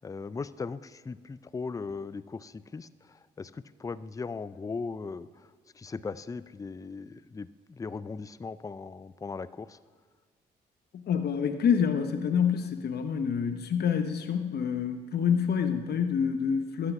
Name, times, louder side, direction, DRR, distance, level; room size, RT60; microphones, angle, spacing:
voice 1, 0.0-9.8, left 4 dB, 20° left, 16 dB, 0.4 m, -38 dB
voice 2, 10.9-16.9, left 7 dB, 60° left, 7 dB, 0.8 m, -27 dB
13.0 x 8.3 x 5.9 m, 1.5 s
supercardioid pair, 65°, 19 cm